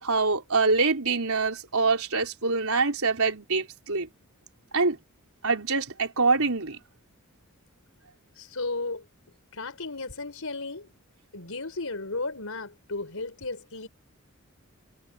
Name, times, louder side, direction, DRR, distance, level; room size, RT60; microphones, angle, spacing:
voice 1, 0.0-4.1 4.7-5.0 5.4-6.8, right 4 dB, 80° right, 4.3 m, -25 dB
voice 2, 8.4-9.1 9.5-10.9 11.3-13.9, left 3 dB, 75° left, 5.1 m, -34 dB
head